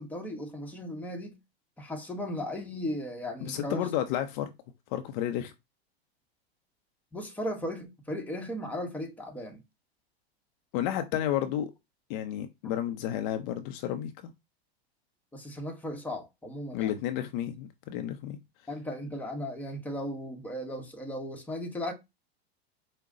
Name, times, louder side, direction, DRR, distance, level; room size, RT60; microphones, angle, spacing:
voice 1, 0.0-1.4 1.8-3.9 7.1-9.6 15.3-17.0 18.7-21.9, left 1 dB, 5° left, 1.0 m, -36 dB
voice 2, 3.4-4.5 4.9-5.5 10.7-11.7 12.1-14.3 16.7-18.4, left 11 dB, 50° left, 0.6 m, -31 dB
4.9 x 2.2 x 3.7 m
hypercardioid pair, 115°, 31 cm